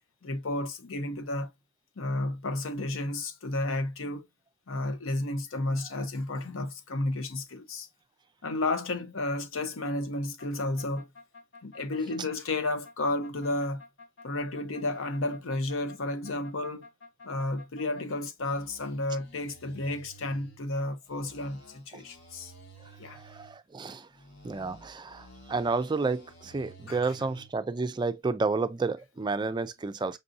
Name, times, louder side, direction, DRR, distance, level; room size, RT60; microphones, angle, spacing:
voice 1, 0.2-1.5 2.0-4.3 4.7-7.9 8.4-11.1 11.6-13.8 14.2-16.9 17.2-22.5 23.0-23.2 26.9-27.1, left 2 dB, 80° left, 0.7 m, -32 dB
sound 1, 10.4-18.1 18.4-20.6 21.1-23.6 24.1-27.5, left 1 dB, 60° left, 1.3 m, -52 dB
voice 2, 23.1-24.1 24.4-30.2, right 3 dB, 20° right, 0.3 m, -31 dB
5.3 x 2.6 x 2.5 m
head